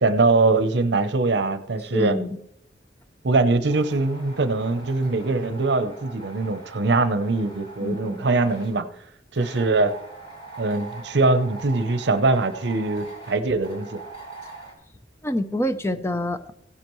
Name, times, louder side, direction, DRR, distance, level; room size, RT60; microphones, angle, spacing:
voice 1, 0.0-2.2 3.2-8.9 9.3-9.9 10.6-14.0, right 3 dB, 75° right, 11 dB, 0.7 m, -22 dB
voice 2, 1.9-2.4 7.8-8.3 15.2-16.5, left 1 dB, 15° left, 9 dB, 0.6 m, -26 dB
sound 1, 3.7-8.7 9.3-14.7, right 3 dB, 35° left, 3.3 m, -42 dB
16.0 x 9.9 x 3.1 m, 0.74 s
head